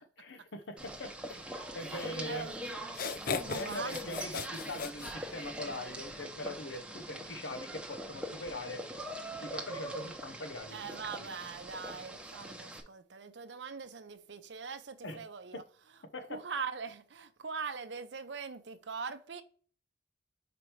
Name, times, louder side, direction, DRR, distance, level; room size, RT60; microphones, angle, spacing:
voice 1, 0.2-2.5 3.5-8.9 9.4-11.3 15.0-15.3 15.5-15.6 16.1-16.4, left 1 dB, 80° left, 0.9 m, -42 dB
sound 1, 0.8-12.8, right 1 dB, 5° right, 0.8 m, -43 dB
voice 2, 1.8-2.5 3.0-4.0 10.7-15.6 16.3-19.4, right 5 dB, 70° right, 0.7 m, -42 dB
sound 2, 2.3-2.4 2.9-5.7, left 5 dB, 50° left, 0.5 m, -38 dB
5.1 x 4.5 x 4.5 m
head